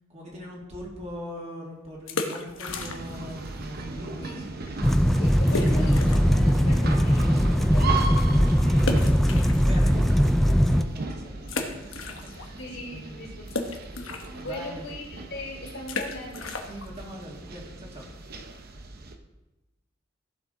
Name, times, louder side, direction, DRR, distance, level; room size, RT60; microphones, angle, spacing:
voice 1, 0.1-4.6 8.6-12.6 12.9-13.3 14.3-14.9 16.6-18.1, equal, 35° right, -3 dB, 2.3 m, -42 dB
sound 1, 1.9-3.3 3.6-3.7 4.3-4.4 4.6-4.7 5.5-6.4 6.9-7.0 8.8-10.1 10.6-10.7 11.4-12.6 12.9-18.4, left 3 dB, 80° left, 1.1 m, -35 dB
sound 2, 2.7-19.2, right 3 dB, 50° right, 0.8 m, -37 dB
sound 3, 4.8-10.8, equal, ahead, 0.3 m, -20 dB
voice 2, 5.2-8.7 12.5-13.6 14.4-16.4, left 1 dB, 60° left, -1 dB, 2.9 m, -39 dB
14.5 x 6.1 x 3.8 m, 1.0 s
head